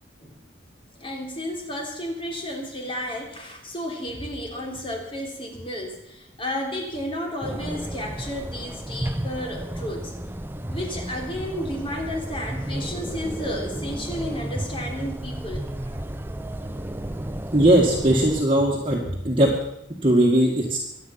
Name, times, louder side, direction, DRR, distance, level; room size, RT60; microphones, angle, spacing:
voice 1, 1.0-10.1 10.7-16.0, equal, 30° left, 1 dB, 3.5 m, -32 dB
sound 1, 7.4-18.4, right 1 dB, 10° right, 0.6 m, -32 dB
voice 2, 17.5-19.5 20.0-20.8, right 1 dB, 25° right, -3 dB, 2.0 m, -19 dB
24.0 x 8.7 x 5.9 m, 0.80 s
head